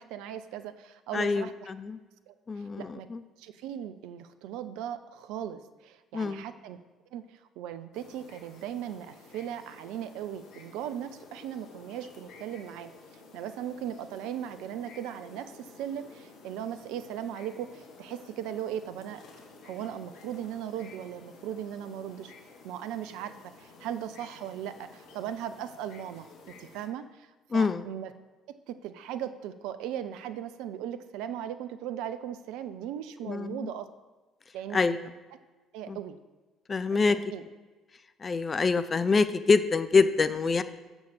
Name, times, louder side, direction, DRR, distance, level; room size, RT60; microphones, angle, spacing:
voice 1, 0.0-1.7 2.3-2.4 2.8-3.1 3.4-6.8 7.1-12.9 13.3-19.2 19.6-22.3 22.6-27.3 27.5-28.1 28.7-33.9 34.5-35.1 35.7-36.2 37.1-37.4, right 10 dB, 65° right, 11 dB, 0.4 m, -38 dB
voice 2, 1.1-2.0 2.5-3.2 6.1-6.4 27.5-27.9 33.2-33.7 34.7-35.0 35.9-36.0 36.7-37.2 38.2-40.6, left 4 dB, 35° left, 12 dB, 0.6 m, -25 dB
sound 1, 7.9-26.9, left 3 dB, 60° left, 1.3 m, -52 dB
6.3 x 6.2 x 7.0 m, 1.3 s
figure-of-eight pair, 50°, 0 cm